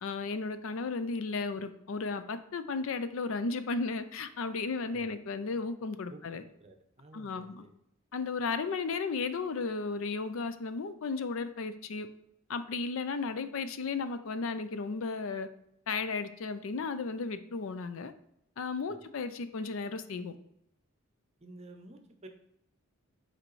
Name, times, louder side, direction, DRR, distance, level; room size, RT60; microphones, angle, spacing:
voice 1, 0.0-6.4 7.1-7.6 8.1-12.1 12.5-15.5 15.9-18.1 18.6-20.4, left 4 dB, 65° left, 11 dB, 0.4 m, -34 dB
voice 2, 4.9-5.2 6.1-7.7 18.9-19.0 21.4-22.3, right 2 dB, 30° right, 5 dB, 0.7 m, -52 dB
7.5 x 4.4 x 3.1 m, 0.76 s
head